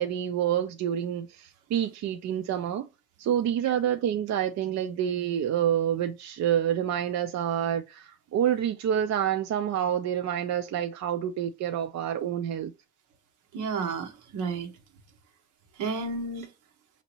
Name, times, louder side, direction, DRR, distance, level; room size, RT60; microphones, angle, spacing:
voice 1, 0.0-2.9 3.2-12.7, right 10 dB, 65° right, 0.5 m, -28 dB
voice 2, 13.5-14.7 15.8-16.5, right 4 dB, 85° right, 1.0 m, -32 dB
5.0 x 2.7 x 2.8 m
cardioid pair, 90°, 30 cm